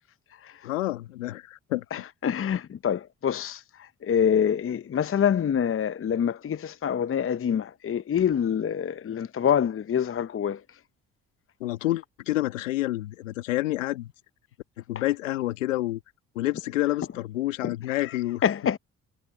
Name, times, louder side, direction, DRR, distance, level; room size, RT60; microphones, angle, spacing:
voice 1, 0.6-2.0 11.6-14.1 14.8-16.0 16.3-18.4, left 16 dB, 90° left, 1.6 m, -28 dB
voice 2, 1.9-10.6 17.9-18.1 18.4-18.8, left 8 dB, 35° left, 0.8 m, -26 dB
hypercardioid pair, 50°, 37 cm